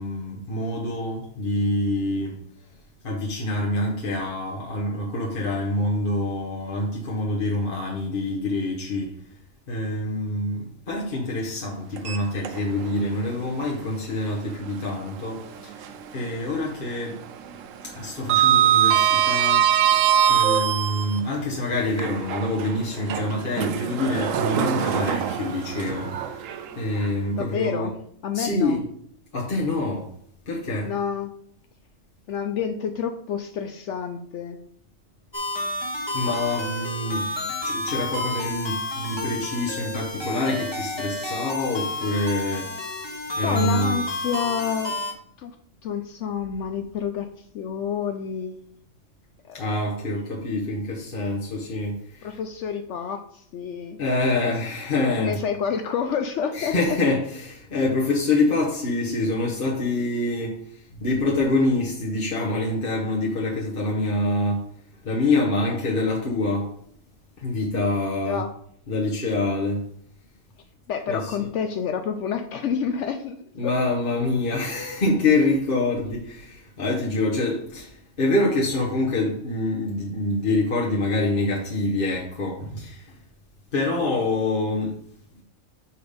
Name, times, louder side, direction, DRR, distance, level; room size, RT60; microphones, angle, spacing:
voice 1, 0.0-2.4 3.0-9.1 9.7-15.8 16.1-17.2 18.0-19.7 20.3-26.1 26.8-27.9 28.3-28.9 29.3-30.1 30.5-30.9 36.1-37.2 37.6-42.7 43.4-44.1 49.5-52.3 54.0-55.4 56.5-60.6 61.0-64.6 65.0-66.7 67.4-68.4 68.9-69.8 71.1-71.3 73.6-77.9 78.2-83.0 83.7-85.0, left 2 dB, 45° left, 1.2 m, -26 dB
Sliding door, 12.0-12.9 13.3-13.4 15.1-16.2 16.5-16.8 17.1-21.2 21.9-27.1, right 10 dB, 85° right, 1.0 m, -23 dB
voice 2, 27.3-27.9 28.2-28.8 30.8-31.3 32.3-34.6 43.4-44.9 45.4-45.5 45.8-47.3 47.5-48.6 49.5-49.7 52.2-54.0 55.2-56.8 68.3-68.5 70.9-73.4 73.6-73.7, left 7 dB, 70° left, 0.9 m, -28 dB
sound 1, 35.3-45.1, left 2 dB, 20° left, 1.2 m, -30 dB
6.8 x 4.3 x 5.0 m
omnidirectional pair, 1.3 m